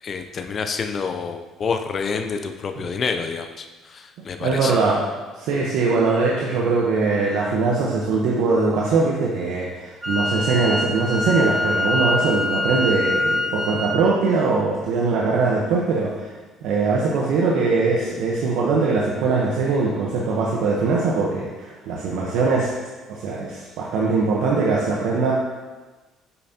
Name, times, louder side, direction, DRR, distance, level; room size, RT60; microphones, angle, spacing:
voice 1, 0.0-4.8, left 5 dB, 40° left, 6 dB, 0.4 m, -28 dB
voice 2, 4.4-5.0 5.4-16.3 16.6-22.7 23.1-25.3, right 4 dB, 80° right, -3 dB, 0.9 m, -21 dB
Wind instrument woodwind instrument, 10.0-14.0, left 1 dB, 10° right, 0.7 m, -24 dB
8.2 x 5.6 x 2.8 m, 1.2 s
cardioid pair, 115°, 0 cm